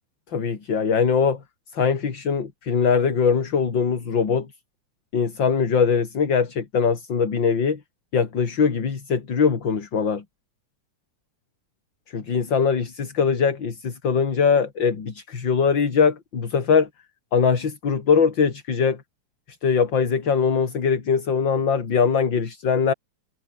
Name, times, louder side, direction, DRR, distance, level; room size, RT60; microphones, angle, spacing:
voice 1, 0.3-1.4 1.7-4.5 5.1-7.8 8.1-10.2 12.1-16.9 17.3-19.0 19.6-22.9, left 6 dB, 40° left, 3.1 m, -21 dB
omnidirectional pair, 3.5 m